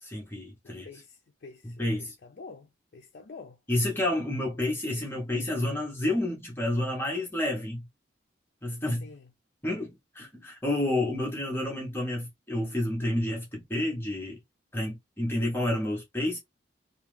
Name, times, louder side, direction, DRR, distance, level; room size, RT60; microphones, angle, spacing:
voice 1, 0.0-0.9 1.6-2.1 3.7-7.8 8.6-9.1 9.6-14.4 14.7-16.4, left 1 dB, 10° left, 0.7 m, -30 dB
voice 2, 0.6-3.6 8.8-9.3, left 4 dB, 55° left, 0.4 m, -48 dB
2.4 x 2.3 x 3.1 m
head